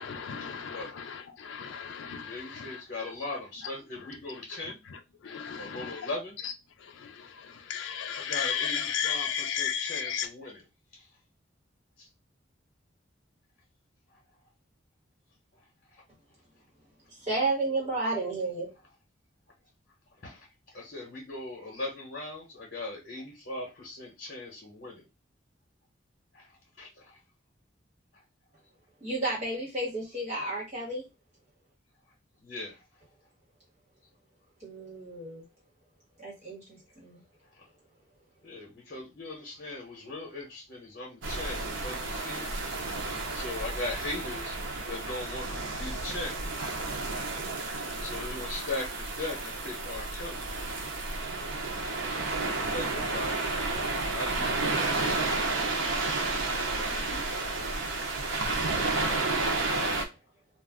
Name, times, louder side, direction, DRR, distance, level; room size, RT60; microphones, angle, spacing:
voice 1, 0.0-3.1 4.0-4.1 4.6-6.1 6.4-6.5 6.8-10.3, left 8 dB, 75° left, 6 dB, 0.4 m, -35 dB
voice 2, 0.6-1.0 2.3-4.8 5.5-6.4 8.2-10.6 10.9-11.1 12.0-12.1 14.1-14.2 20.2-20.5 20.7-25.0 26.3-26.5 26.8-27.2 32.4-32.8 37.5-37.6 38.4-42.5 42.9-43.0 43.3-44.6 44.9-46.3 48.0-50.4 52.4-53.4 54.1-55.2 56.7-57.8, left 2 dB, 55° left, -2 dB, 1.0 m, -39 dB
voice 3, 17.2-18.7 29.0-31.0 34.6-35.4 36.2-37.2, right 2 dB, 35° right, -5 dB, 1.3 m, -32 dB
sound 1, 41.2-60.0, right 3 dB, 90° right, 0.7 m, -31 dB
2.3 x 2.3 x 3.5 m, 0.25 s
head